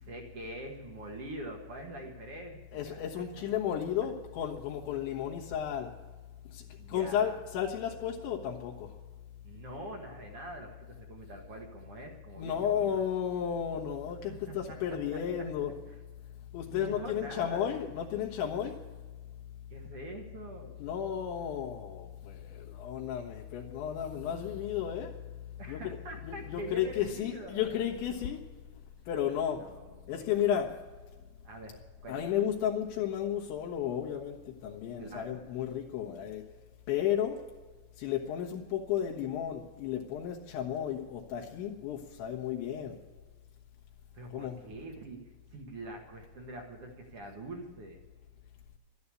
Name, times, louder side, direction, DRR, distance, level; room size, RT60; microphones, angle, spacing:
voice 1, 0.0-3.5 6.8-7.4 9.4-13.0 14.3-15.2 15.9-16.0 16.7-17.7 19.7-20.7 25.6-27.7 29.6-30.2 31.4-32.4 35.0-35.4 44.1-45.2 45.5-48.0, right 1 dB, 55° right, 2 dB, 1.6 m, -44 dB
voice 2, 2.7-5.9 6.5-8.9 12.4-15.7 16.5-18.8 20.8-25.1 25.7-26.0 26.3-28.4 29.1-29.7 30.1-30.7 32.1-36.4 36.9-37.4 38.0-43.0 44.3-44.6, left 9 dB, 80° left, -2 dB, 3.6 m, -33 dB
13.0 x 11.5 x 8.4 m, 1.3 s
omnidirectional pair, 5.3 m